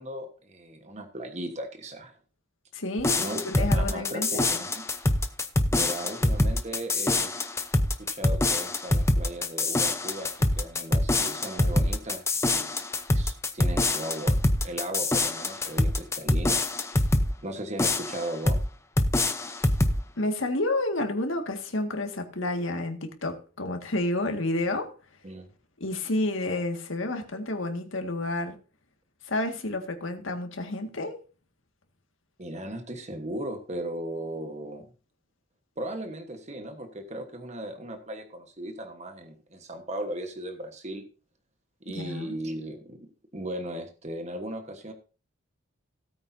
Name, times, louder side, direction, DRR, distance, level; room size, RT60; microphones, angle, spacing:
voice 1, 0.0-2.2 3.2-4.8 5.7-7.3 8.0-12.8 13.1-16.6 17.4-18.6 25.2-25.5 32.4-34.9 35.8-41.0 41.8-43.1 43.3-44.9, right 1 dB, 35° right, 6 dB, 1.3 m, -37 dB
voice 2, 2.7-4.5 20.2-24.9 25.8-28.6 29.2-31.2 41.9-42.3, left 2 dB, 70° left, 5 dB, 1.9 m, -30 dB
sound 1, 3.0-17.3 17.8-18.7 19.0-20.0, left 2 dB, 15° left, 0.7 m, -25 dB
17.0 x 8.7 x 2.7 m, 0.35 s
head